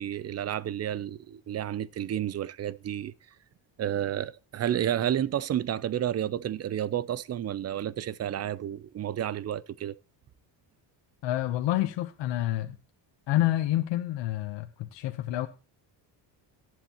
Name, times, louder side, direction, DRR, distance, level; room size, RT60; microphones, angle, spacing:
voice 1, 0.0-3.1 3.8-9.9, right 11 dB, 35° right, 0.5 m, -31 dB
voice 2, 11.2-12.8 13.3-15.5, left 14 dB, 70° left, 1.0 m, -28 dB
18.5 x 7.8 x 3.0 m
cardioid pair, 115°, 45 cm